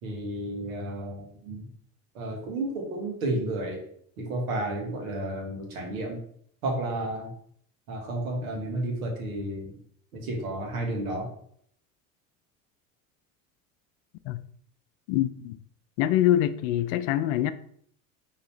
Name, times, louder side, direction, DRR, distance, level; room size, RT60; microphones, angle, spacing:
voice 1, 0.0-1.7 2.1-3.8 4.2-6.2 6.6-7.3 7.9-9.7 10.1-11.3, right 1 dB, 80° right, 1.6 m, -32 dB
voice 2, 15.1-15.6 16.0-17.5, left 12 dB, 70° left, 0.5 m, -24 dB
3.9 x 2.9 x 4.4 m
hypercardioid pair, 75°, 41 cm